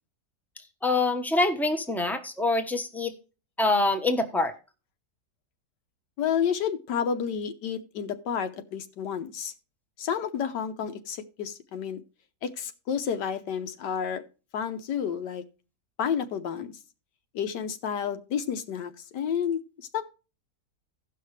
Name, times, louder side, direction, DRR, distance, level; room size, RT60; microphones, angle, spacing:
voice 1, 0.8-3.1 3.6-4.5, left 2 dB, ahead, 5 dB, 0.6 m, -25 dB
voice 2, 6.2-9.5 10.0-12.0 12.4-14.2 14.5-15.4 16.0-16.7 17.3-20.0, left 8 dB, 85° left, 9 dB, 1.5 m, -30 dB
16.5 x 5.8 x 3.2 m, 0.32 s
omnidirectional pair, 1.8 m